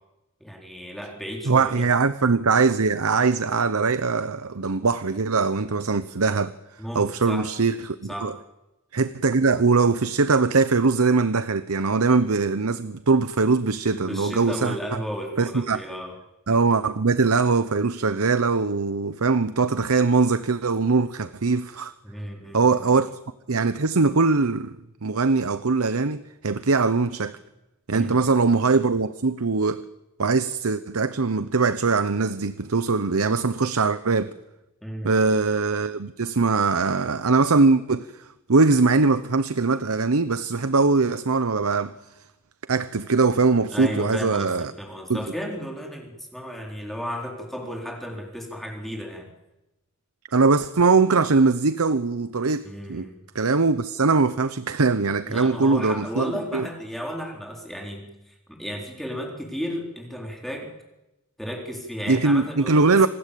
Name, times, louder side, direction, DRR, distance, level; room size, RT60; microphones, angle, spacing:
voice 1, 0.4-1.9 6.8-7.5 8.1-8.3 14.0-16.1 22.0-22.9 27.9-28.6 34.8-35.2 43.7-49.3 52.6-53.2 55.2-60.7 61.4-63.0, equal, ahead, 4.0 m, -34 dB
voice 2, 1.5-6.5 6.9-8.3 8.9-14.8 15.4-15.8 16.5-21.9 22.5-23.1 23.5-24.8 25.0-27.4 27.9-29.8 30.2-34.3 35.0-41.9 42.7-44.7 45.1-45.2 50.3-53.1 53.3-56.7 62.1-63.1, right 4 dB, 80° right, 0.9 m, -21 dB
26.5 x 19.5 x 8.5 m
head